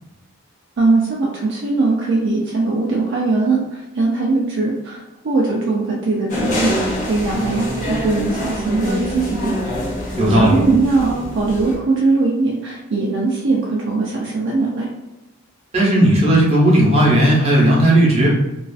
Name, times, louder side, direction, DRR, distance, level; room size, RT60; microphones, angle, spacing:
voice 1, 0.8-9.5 10.1-14.9, right 3 dB, 55° right, -3 dB, 0.4 m, -20 dB
sound 1, 6.3-11.8, left 1 dB, 35° left, 0.6 m, -25 dB
voice 2, 10.2-10.6 15.7-18.3, right 1 dB, 30° right, -5 dB, 0.7 m, -14 dB
2.4 x 2.4 x 2.3 m, 0.98 s
head